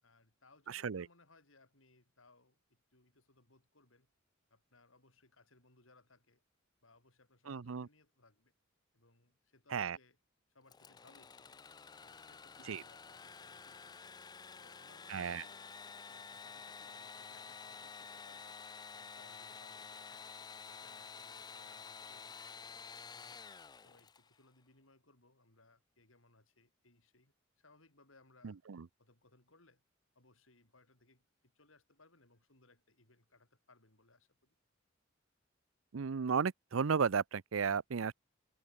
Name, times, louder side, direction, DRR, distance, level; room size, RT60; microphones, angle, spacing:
voice 1, 0.0-4.1 4.5-6.4 6.8-8.5 8.9-10.2 10.5-11.6 12.0-14.1 14.6-15.6 16.1-18.6 18.9-20.3 20.7-22.6 23.0-23.4 23.8-28.6 29.0-29.8 30.1-34.5, left 2 dB, 90° left, 6.3 m, -67 dB
voice 2, 0.7-1.1 7.5-7.9 9.7-10.0 12.7-12.8 15.1-15.4 28.4-28.8 35.9-38.1, right 6 dB, 90° right, 0.6 m, -34 dB
Engine / Sawing, 10.7-24.4, left 5 dB, 20° left, 0.4 m, -51 dB
head